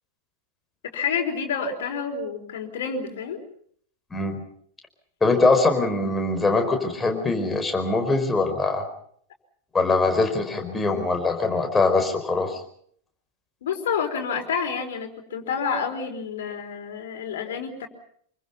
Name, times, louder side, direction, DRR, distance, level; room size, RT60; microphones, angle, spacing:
voice 1, 0.8-3.4 13.6-17.9, left 6 dB, 60° left, 4 dB, 4.4 m, -29 dB
voice 2, 5.2-8.8 9.7-12.6, left 3 dB, 15° left, 5 dB, 4.7 m, -22 dB
26.5 x 24.5 x 5.7 m, 0.63 s
figure-of-eight pair, 90°, 0 cm